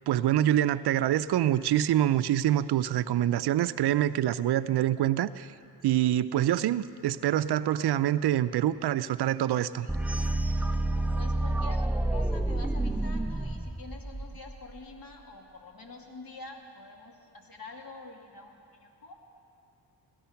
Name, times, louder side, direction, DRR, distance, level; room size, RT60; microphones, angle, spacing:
voice 1, 0.1-5.5 5.8-9.9, right 12 dB, 70° right, 15 dB, 0.5 m, -25 dB
sound 1, 9.9-14.8, right 1 dB, 5° right, 0.3 m, -29 dB
voice 2, 11.2-19.2, left 3 dB, 55° left, 1 dB, 2.3 m, -47 dB
17.5 x 13.0 x 5.8 m, 2.5 s
cardioid pair, 60°, 41 cm